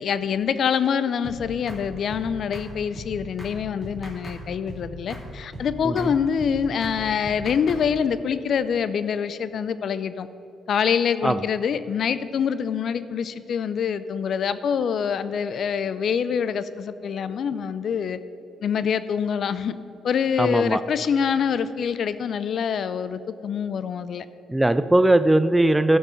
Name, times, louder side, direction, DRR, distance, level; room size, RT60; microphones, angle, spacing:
voice 1, 0.0-10.3 10.7-18.2 18.6-19.7 20.0-24.3, left 7 dB, 60° left, 14 dB, 0.4 m, -25 dB
sound 1, 1.2-1.4 1.7-1.8 2.1-2.3 2.5-2.7 3.0-3.1 3.4-3.5 3.8-4.4 4.7-4.8 5.1-5.3 5.5-5.7 6.0-6.1 6.4-6.5 6.8-7.0 7.2-7.8, equal, 20° left, 2.3 m, -38 dB
voice 2, 20.4-20.8 24.5-26.0, right 1 dB, 10° right, 12 dB, 0.3 m, -19 dB
12.0 x 6.0 x 5.7 m, 2.7 s
cardioid pair, 90°, 0 cm